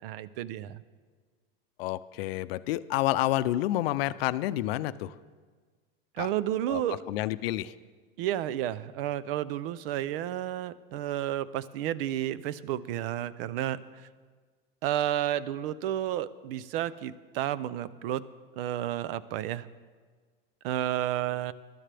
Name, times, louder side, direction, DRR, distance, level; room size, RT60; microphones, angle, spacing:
voice 1, 0.0-0.8 6.2-7.0 8.2-14.1 14.8-18.2 18.6-19.7 20.6-21.5, right 12 dB, 70° right, 18 dB, 0.6 m, -31 dB
voice 2, 1.8-5.1 6.2-6.3 6.7-6.8 7.1-7.7, left 15 dB, 75° left, 15 dB, 0.6 m, -29 dB
21.0 x 12.0 x 3.4 m, 1.5 s
supercardioid pair, 135°, 30 cm